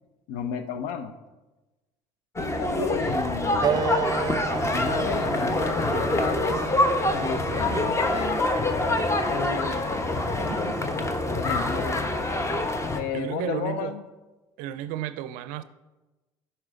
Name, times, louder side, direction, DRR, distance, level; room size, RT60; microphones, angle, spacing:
voice 1, 0.3-1.1 2.4-4.0 4.7-6.6 7.1-8.4 9.3-9.8 11.3-12.0 12.9-14.0, left 6 dB, 70° left, 10 dB, 0.7 m, -33 dB
sound 1, 2.4-13.0, left 2 dB, 20° left, 0.9 m, -26 dB
Wind instrument woodwind instrument, 3.6-8.7, right 7 dB, 30° right, 0.6 m, -32 dB
voice 2, 10.4-11.1 13.1-13.9 14.6-15.6, right 11 dB, 70° right, 14 dB, 0.4 m, -34 dB
11.0 x 4.6 x 3.7 m, 1.1 s
hypercardioid pair, 65°, 14 cm